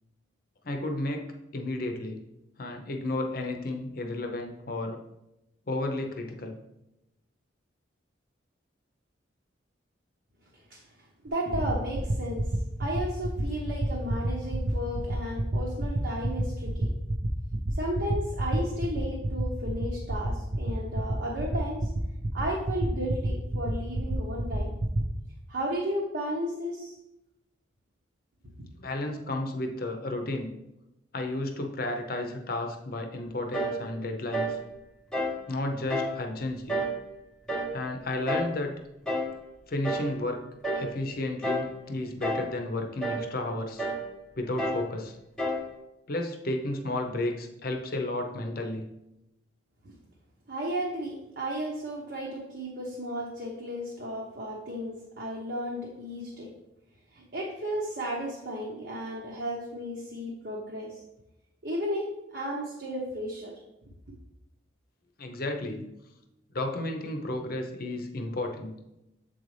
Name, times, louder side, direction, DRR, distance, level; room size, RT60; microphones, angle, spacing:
voice 1, 0.6-2.2 2.6-5.0 5.7-6.6 28.8-30.5 31.1-34.6 35.5-36.8 37.7-38.7 39.7-40.4 40.8-43.9 44.4-45.2 46.1-48.9 65.2-65.8 66.5-68.7, left 2 dB, 50° left, 3 dB, 0.7 m, -32 dB
voice 2, 11.2-12.5 12.8-16.9 17.7-21.9 22.3-24.8 25.5-27.0 50.5-56.5 57.1-61.0 61.6-63.5, equal, 60° right, -3 dB, 0.9 m, -34 dB
sound 1, 11.3-25.0, right 1 dB, 40° right, 0.5 m, -28 dB
sound 2, 33.5-33.8 34.3-34.6 35.1-35.4 35.9-36.2 36.7-37.0 37.5-37.8 38.3-38.6 39.1-39.3 39.8-40.2 40.6-40.9 41.4-41.7 42.2-42.6 43.0-43.3 43.8-44.1 44.6-44.9 45.4-45.7, equal, 5° left, 0.7 m, -30 dB
7.6 x 3.9 x 3.2 m, 0.89 s
head